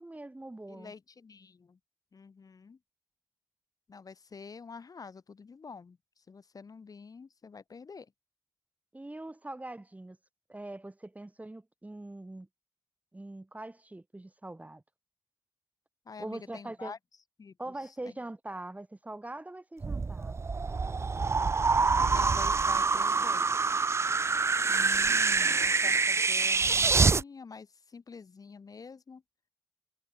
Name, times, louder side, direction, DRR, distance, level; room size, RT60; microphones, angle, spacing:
voice 1, 0.0-0.9 8.9-10.2 10.5-12.5 13.1-14.8 16.2-16.9 17.6-20.4 24.7-25.6, right 2 dB, 20° right, 1.1 m, -43 dB
voice 2, 0.7-1.8 2.1-2.8 3.9-8.1 16.1-17.0 17.4-18.1 22.0-23.9 25.5-29.2, left 5 dB, 60° left, 0.6 m, -48 dB
sound 1, 19.8-27.2, right 4 dB, 40° right, 0.4 m, -26 dB
wide cardioid pair, 85°, 7 cm